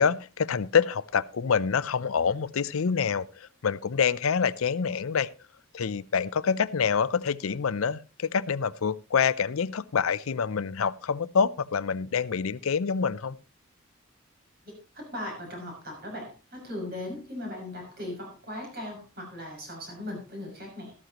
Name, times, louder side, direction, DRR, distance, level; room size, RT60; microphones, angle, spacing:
voice 1, 0.0-5.3 5.7-13.4, left 6 dB, 90° left, 17 dB, 0.5 m, -26 dB
voice 2, 14.9-20.9, left 1 dB, 50° right, 1 dB, 6.1 m, -38 dB
13.5 x 13.0 x 2.9 m, 0.32 s
head